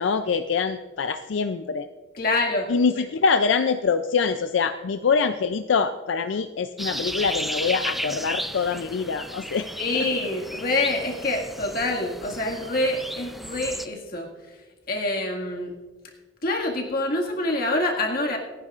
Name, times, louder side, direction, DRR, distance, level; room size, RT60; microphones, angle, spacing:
voice 1, 0.0-1.9 2.7-9.7 10.0-10.1, left 5 dB, 85° left, 9 dB, 0.4 m, -24 dB
voice 2, 2.1-2.7 9.8-14.6 14.9-15.8 16.4-18.4, left 2 dB, 55° left, 0 dB, 2.0 m, -26 dB
sound 1, 6.8-13.9, equal, ahead, 0.4 m, -34 dB
28.0 x 9.8 x 2.5 m, 1.3 s
head